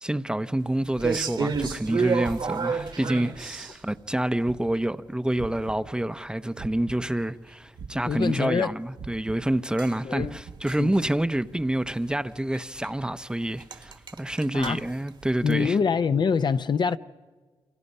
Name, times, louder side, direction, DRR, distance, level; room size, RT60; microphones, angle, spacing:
voice 1, 0.0-15.8, right 1 dB, 10° right, 0.7 m, -28 dB
sound 1, 1.0-4.0 9.8-11.0 11.3-11.6 11.8-12.0 12.5-12.6 12.8-12.9 13.2-13.3 13.6-15.6, right 5 dB, 50° right, 1.4 m, -30 dB
sound 2, 4.9-7.4 7.7-11.1, right 5 dB, 70° right, 1.3 m, -44 dB
voice 2, 8.0-8.8 10.0-10.4 10.8-11.0 14.5-14.9 15.4-17.0, left 6 dB, 50° left, 0.7 m, -25 dB
28.0 x 27.0 x 5.5 m
cardioid pair, 90°, 10 cm